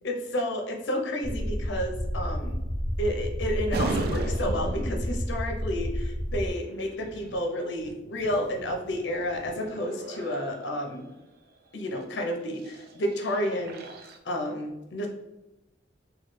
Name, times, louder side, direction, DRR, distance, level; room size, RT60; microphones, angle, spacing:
voice 1, 0.0-2.6 3.0-11.1 11.7-13.8 14.3-15.1, left 1 dB, 70° left, 2 dB, 0.6 m, -31 dB
sound 1, 1.2-6.5, equal, 20° left, 0.4 m, -30 dB
sound 2, 3.7-5.3 6.7-11.1 11.9-12.1 12.5-14.2, right 3 dB, 55° right, 0.4 m, -38 dB
3.1 x 2.3 x 3.1 m, 0.99 s
head